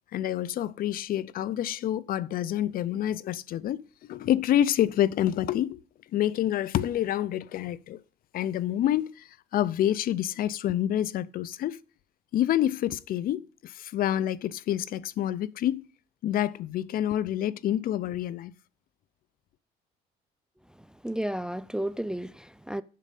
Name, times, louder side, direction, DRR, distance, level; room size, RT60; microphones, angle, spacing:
voice 1, 0.1-3.8 4.1-5.8 6.1-8.0 8.3-11.8 12.3-15.9 16.2-18.5, left 12 dB, 60° left, 0.5 m, -27 dB
voice 2, 21.0-22.8, right 1 dB, 5° right, 0.4 m, -32 dB
7.5 x 6.4 x 6.6 m
cardioid pair, 110°, 17 cm